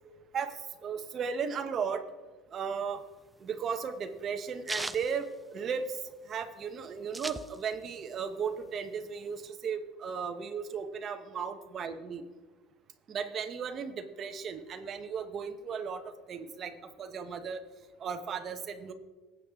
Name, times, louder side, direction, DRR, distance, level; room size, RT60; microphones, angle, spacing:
voice 1, 0.3-2.0 2.5-3.0 3.4-12.2 13.1-17.6 18.0-18.9, right 6 dB, 30° right, 7 dB, 0.8 m, -36 dB
sound 1, 2.9-6.1 6.4-6.5 6.7-8.0 8.3-9.5, right 2 dB, 5° right, 0.3 m, -40 dB
19.0 x 8.1 x 3.5 m, 1.3 s
cardioid pair, 170°, 0 cm